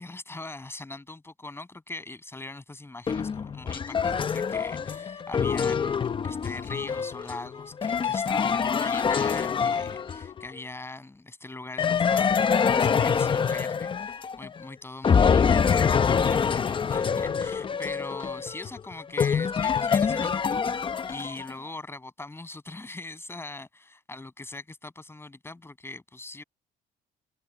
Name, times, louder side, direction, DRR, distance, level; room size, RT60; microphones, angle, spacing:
voice 1, 0.0-26.4, left 2 dB, 15° left, 7.5 m, -41 dB
sound 1, 3.1-10.5 11.8-14.6 15.0-21.5, left 6 dB, 30° left, 0.8 m, -25 dB
cardioid pair, 110°, 17 cm